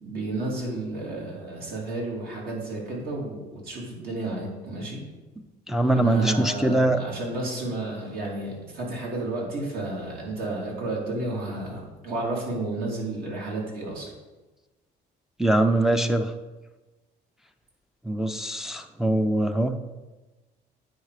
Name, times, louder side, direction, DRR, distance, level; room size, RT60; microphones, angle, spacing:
voice 1, 0.0-5.0 5.9-14.1, right 2 dB, 60° right, -2 dB, 2.8 m, -32 dB
voice 2, 5.4-7.0 15.4-16.3 18.0-19.8, right 1 dB, 5° right, 4 dB, 0.5 m, -23 dB
9.2 x 4.8 x 4.9 m, 1.2 s
cardioid pair, 110°, 17 cm